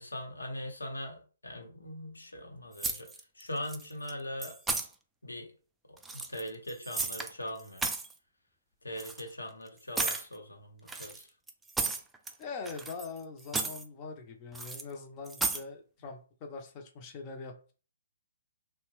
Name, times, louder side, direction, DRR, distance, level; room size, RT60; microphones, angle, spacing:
voice 1, 0.0-3.1 3.3-4.6 5.2-5.5 5.9-7.9 8.8-11.3, left 1 dB, 85° left, 3 dB, 0.9 m, -41 dB
sound 1, 2.8-3.4 3.7-4.1 4.4-4.9 6.0-7.3 7.6-8.1 9.0-9.2 10.0-10.3 10.9-12.3 12.7-13.2 13.4-13.8 14.5-14.8 15.3-15.6, right 3 dB, 5° right, 0.3 m, -34 dB
voice 2, 12.4-17.7, left 4 dB, 30° left, 4 dB, 0.6 m, -43 dB
2.8 x 2.1 x 3.1 m, 0.38 s
figure-of-eight pair, 130°, 0 cm